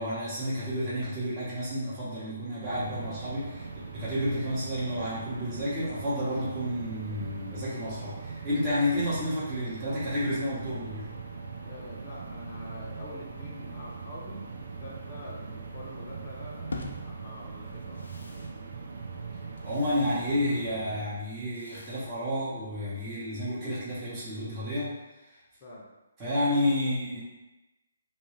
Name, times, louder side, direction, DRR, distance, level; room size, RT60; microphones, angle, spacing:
voice 1, 0.0-11.1 19.6-25.0 25.3-25.4 26.2-27.2, left 1 dB, 20° right, -11 dB, 1.0 m, -30 dB
sound 1, 2.6-21.0, right 4 dB, 65° right, 0.4 m, -41 dB
voice 2, 11.6-14.5 14.8-16.7 17.0-18.0 25.6-25.9, left 1 dB, 35° left, -5 dB, 0.7 m, -45 dB
sound 2, 16.7-22.9, left 2 dB, 80° left, 0.4 m, -46 dB
2.5 x 2.3 x 3.1 m, 1.0 s
hypercardioid pair, 150°, 0 cm